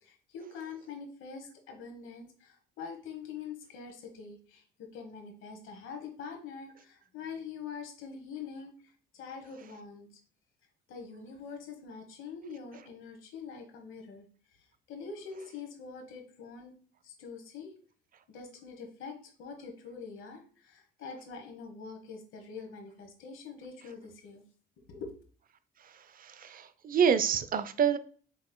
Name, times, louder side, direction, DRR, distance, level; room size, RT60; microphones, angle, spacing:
voice 1, 0.0-10.1 10.9-16.8 17.0-17.7 18.3-24.4 24.9-25.1, left 5 dB, 85° left, 4 dB, 1.1 m, -44 dB
voice 2, 26.2-28.0, right 7 dB, 45° right, 12 dB, 0.4 m, -27 dB
6.2 x 3.0 x 2.2 m, 0.43 s
cardioid pair, 90°, 20 cm